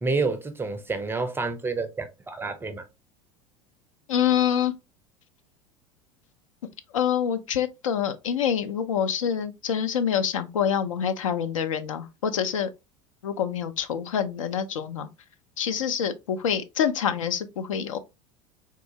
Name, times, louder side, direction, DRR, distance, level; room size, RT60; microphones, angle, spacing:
voice 1, 0.0-2.8, right 3 dB, 15° right, 0.4 m, -29 dB
voice 2, 4.1-4.7 6.9-12.7 13.2-15.1 15.6-18.0, left 8 dB, 70° left, 0.5 m, -26 dB
3.6 x 2.4 x 2.7 m
figure-of-eight pair, 75°, 17 cm